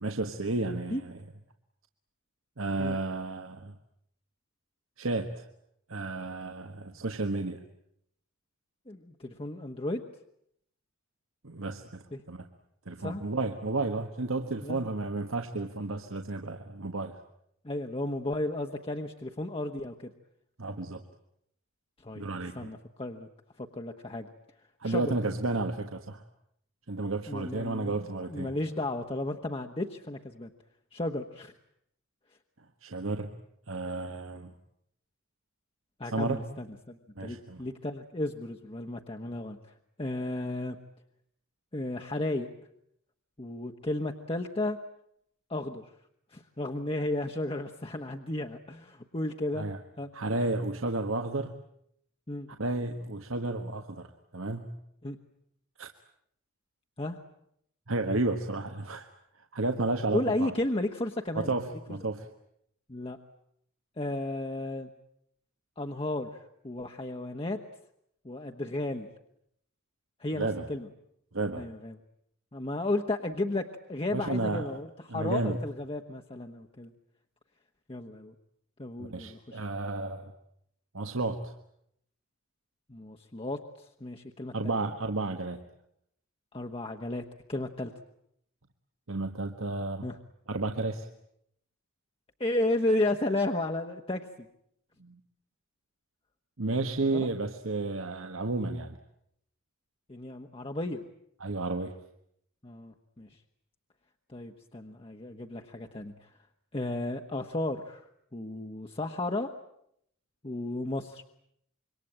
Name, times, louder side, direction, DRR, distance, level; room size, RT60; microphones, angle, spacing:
voice 1, 0.0-1.2 2.6-3.7 5.0-5.4 5.9-7.6 11.4-12.5 12.9-17.1 20.6-21.0 22.1-22.7 24.8-26.2 26.9-28.6 32.8-33.3 33.7-34.5 36.0-36.4 37.2-37.6 49.5-49.8 50.1-51.5 52.6-54.1 54.3-54.7 55.8-55.9 57.9-59.1 59.5-60.5 61.3-62.3 70.3-70.7 71.3-71.6 74.1-74.7 75.1-75.6 79.0-80.3 80.9-81.5 84.5-85.6 89.1-90.1 90.5-91.1 95.0-95.2 96.6-99.0 101.4-101.9, right 2 dB, 75° right, 6 dB, 1.6 m, -32 dB
voice 2, 8.9-10.0 12.1-12.2 13.0-13.2 14.6-14.9 17.6-20.1 22.0-22.2 22.5-23.3 23.6-24.3 24.8-25.1 27.3-30.5 30.9-31.5 36.0-39.6 40.0-40.8 41.7-42.5 43.4-44.8 45.5-45.8 46.3-49.7 50.0-50.1 52.3-52.5 55.0-55.2 57.0-57.2 60.1-61.5 62.9-63.2 64.0-64.9 65.8-66.3 66.6-67.6 68.2-69.1 70.2-70.9 71.6-71.9 72.5-76.9 77.9-78.3 78.8-79.6 82.9-83.6 84.0-84.5 86.5-87.2 87.5-87.9 90.0-90.2 92.4-94.5 97.1-97.3 100.1-101.0 102.6-103.3 104.3-106.3 106.7-108.0 108.3-109.5 110.4-111.2, left 2 dB, 25° left, 3 dB, 1.2 m, -33 dB
27.0 x 23.5 x 8.9 m, 0.74 s
head